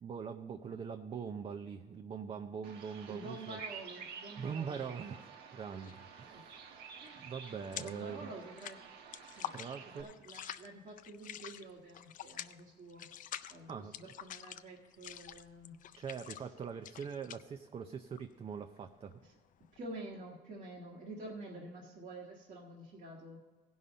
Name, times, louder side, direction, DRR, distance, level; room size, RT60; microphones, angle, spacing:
voice 1, 0.0-3.6 4.4-6.7 7.2-8.3 9.5-10.1 13.7-13.9 15.9-19.2, right 6 dB, 35° right, 6 dB, 0.5 m, -43 dB
Bird vocalization bird call bird song, 2.6-10.0, right 6 dB, 85° right, 1.1 m, -51 dB
voice 2, 3.1-4.9 6.3-6.4 7.0-7.3 7.7-8.8 9.4-9.5 9.9-13.1 13.5-15.8 16.1-16.5 19.2-19.3 19.7-23.4, right 2 dB, 50° right, -2 dB, 1.5 m, -49 dB
sound 1, 5.7-6.1 6.4-8.1 8.4-19.9, left 10 dB, 50° left, 0.5 m, -47 dB
16.5 x 5.5 x 5.1 m, 1.4 s
cardioid pair, 110°, 17 cm